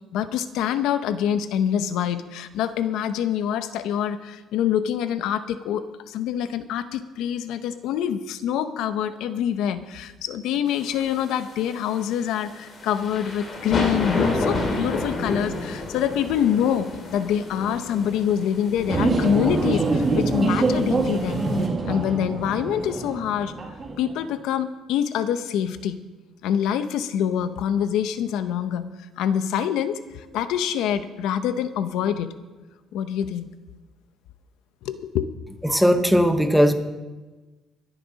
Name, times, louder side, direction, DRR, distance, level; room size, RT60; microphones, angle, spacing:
voice 1, 0.1-21.4 21.8-23.5 24.0-26.0 26.4-28.8 29.2-32.3 32.9-33.5 34.8-35.3, left 9 dB, 75° left, 11 dB, 0.8 m, -25 dB
sound 1, 10.7-21.7, left 2 dB, 35° left, 2.5 m, -31 dB
sound 2, 18.9-24.2, right 3 dB, 25° right, 1.8 m, -24 dB
voice 2, 35.6-36.7, equal, ahead, 7 dB, 1.0 m, -18 dB
22.5 x 10.0 x 4.1 m, 1.2 s
cardioid pair, 155°, 0 cm